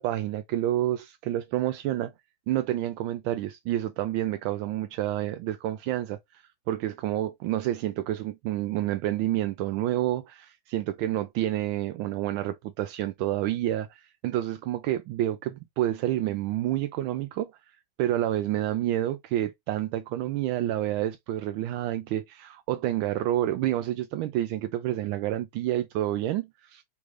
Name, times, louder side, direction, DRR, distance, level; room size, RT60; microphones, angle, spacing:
voice 1, 0.0-2.1 2.5-26.8, right 13 dB, 85° right, 1.4 m, -29 dB
6.4 x 2.5 x 3.1 m
omnidirectional pair, 2.2 m